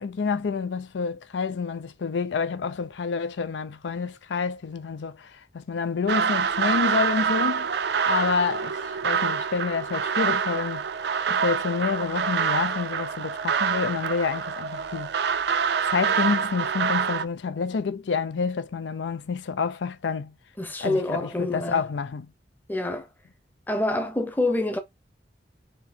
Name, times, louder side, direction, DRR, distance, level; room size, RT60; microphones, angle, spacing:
voice 1, 0.0-7.7 8.1-10.8 11.3-15.1 15.9-20.3 20.8-22.3, left 5 dB, 85° left, 0.4 m, -28 dB
sound 1, 6.1-17.2, right 6 dB, 65° right, 0.4 m, -26 dB
voice 2, 20.6-21.8 22.7-23.1 23.7-24.8, left 2 dB, 10° left, 0.7 m, -26 dB
4.4 x 2.8 x 4.2 m
head